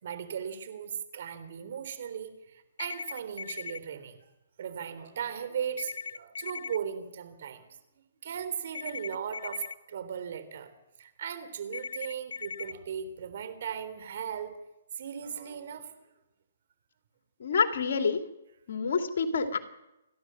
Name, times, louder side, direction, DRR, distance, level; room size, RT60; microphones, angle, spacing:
voice 1, 0.0-4.2 4.6-7.7 8.2-10.7 11.0-14.5 14.9-15.9, right 8 dB, 55° right, 12 dB, 3.6 m, -37 dB
sound 1, 2.8-3.8 5.8-6.8 8.7-9.7 11.7-12.7, left 5 dB, 80° left, 0.8 m, -38 dB
voice 2, 17.4-18.2 18.7-19.6, left 5 dB, 60° left, 7 dB, 2.6 m, -27 dB
29.0 x 12.0 x 7.8 m, 0.94 s
hypercardioid pair, 150°, 0 cm